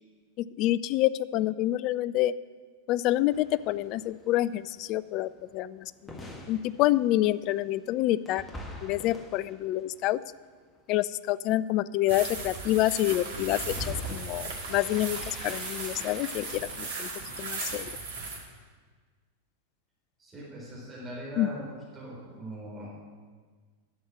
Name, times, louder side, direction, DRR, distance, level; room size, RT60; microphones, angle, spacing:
voice 1, 0.4-2.3 2.9-6.1 6.5-8.4 8.8-10.2 10.9-17.1 17.4-17.9 21.4-21.5, left 15 dB, 40° left, 18 dB, 0.3 m, -27 dB
sound 1, 3.3-10.8 13.7-17.3, left 1 dB, 15° left, 1.5 m, -45 dB
sound 2, 12.1-18.4, right 4 dB, 60° right, 2.1 m, -37 dB
voice 2, 20.2-21.6 21.9-22.9, right 1 dB, 15° right, -5 dB, 4.0 m, -41 dB
11.0 x 7.0 x 7.5 m, 1.5 s
figure-of-eight pair, 90°, 0 cm